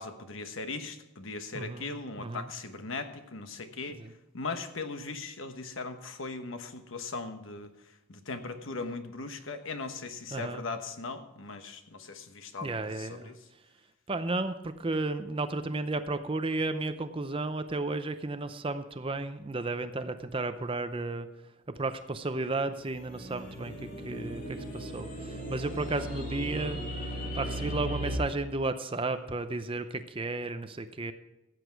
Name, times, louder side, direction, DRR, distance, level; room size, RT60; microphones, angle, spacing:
voice 1, 0.0-4.0 4.3-7.7 8.1-13.4, left 3 dB, 70° left, 8 dB, 1.1 m, -39 dB
voice 2, 1.5-1.9 2.2-2.5 4.0-4.1 10.3-10.6 12.6-13.3 14.1-21.3 21.7-26.8 27.3-31.1, right 2 dB, 25° right, 10 dB, 0.6 m, -33 dB
sound 1, 22.9-28.2, equal, 40° left, 2.5 m, -37 dB
15.0 x 8.2 x 4.6 m, 0.96 s
head